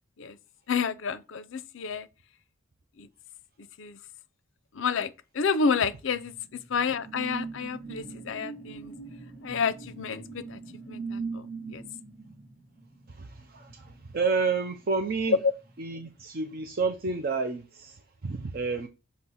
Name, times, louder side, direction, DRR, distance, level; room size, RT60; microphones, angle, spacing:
voice 1, 0.7-2.1 3.0-3.1 3.8-4.0 4.8-5.1 5.4-6.3 6.7-8.9 9.4-10.6 10.9-11.8, left 5 dB, 60° left, 0.5 m, -30 dB
sound 1, 6.2-15.1 15.5-15.7, right 4 dB, 10° right, 3.7 m, -41 dB
voice 2, 13.1-15.4 15.8-18.9, right 4 dB, 45° right, 0.5 m, -30 dB
6.1 x 2.9 x 5.6 m
head